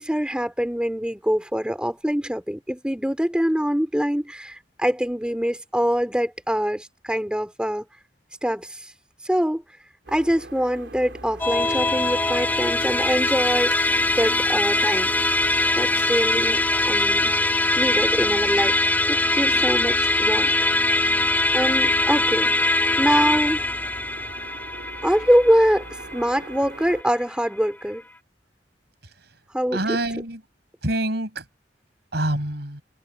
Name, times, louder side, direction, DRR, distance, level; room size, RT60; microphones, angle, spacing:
voice 1, 0.0-7.8 8.4-8.9 9.2-9.6 10.1-15.1 15.8-17.3 17.8-18.8 19.1-20.5 21.5-23.7 25.0-28.0 29.5-30.0, equal, 5° right, 3.0 m, -24 dB
sound 1, 10.1-27.0, right 2 dB, 85° right, 3.6 m, -41 dB
Musical instrument, 11.4-26.9, left 2 dB, 10° left, 2.6 m, -22 dB
voice 2, 29.7-30.4 30.8-31.5 32.1-32.8, right 1 dB, 65° right, 7.8 m, -26 dB
head